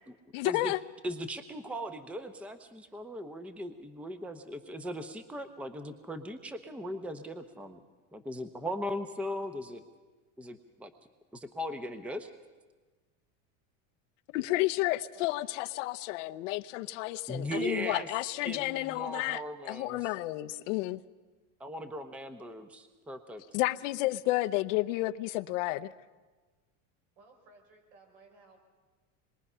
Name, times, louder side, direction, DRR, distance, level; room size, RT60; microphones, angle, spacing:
voice 1, 0.3-0.8 14.3-21.0 23.5-25.9, left 18 dB, 70° left, 0.8 m, -31 dB
voice 2, 1.0-7.8 8.1-9.8 10.4-10.9 11.3-12.3 17.3-18.1 18.4-20.1 21.6-23.4, equal, 5° right, 0.8 m, -38 dB
voice 3, 14.4-15.6 23.8-23.9 24.2-24.5 27.2-28.6, right 3 dB, 70° right, 6.5 m, -59 dB
26.0 x 22.0 x 5.6 m
supercardioid pair, 135°, 38 cm